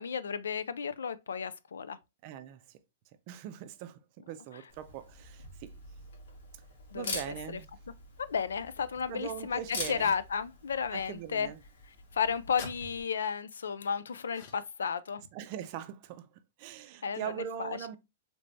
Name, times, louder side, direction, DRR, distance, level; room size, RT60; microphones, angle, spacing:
voice 1, 0.0-2.0 6.9-7.2 7.5-7.6 8.2-11.5 12.1-15.2 17.0-17.3 17.6-17.8, left 6 dB, 90° left, 0.3 m, -33 dB
voice 2, 2.2-2.8 3.3-5.8 6.9-7.7 9.1-10.2 10.9-11.6 15.3-18.0, right 10 dB, 45° right, 0.4 m, -41 dB
Camera, 4.7-13.0, left 3 dB, 75° left, 1.3 m, -45 dB
sound 1, 10.0-10.3 12.6-12.8 14.3-14.8, left 7 dB, 50° left, 0.6 m, -47 dB
3.2 x 3.1 x 2.5 m
hypercardioid pair, 135°, 0 cm